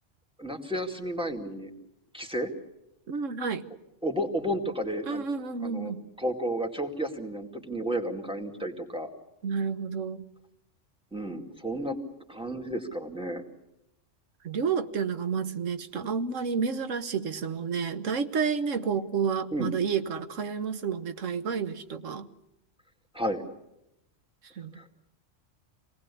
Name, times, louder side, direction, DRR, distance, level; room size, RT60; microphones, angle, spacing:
voice 1, 0.4-1.7 2.1-2.5 4.0-5.3 5.6-9.1 11.1-12.0 12.3-13.4 19.5-19.7 23.1-23.4 24.8-24.9, equal, 5° right, 4 dB, 2.3 m, -32 dB
voice 2, 3.1-3.6 5.0-6.0 9.4-10.3 14.4-22.3 24.6-24.8, right 6 dB, 90° right, 9 dB, 1.5 m, -30 dB
26.5 x 19.0 x 8.4 m, 0.88 s
omnidirectional pair, 1.3 m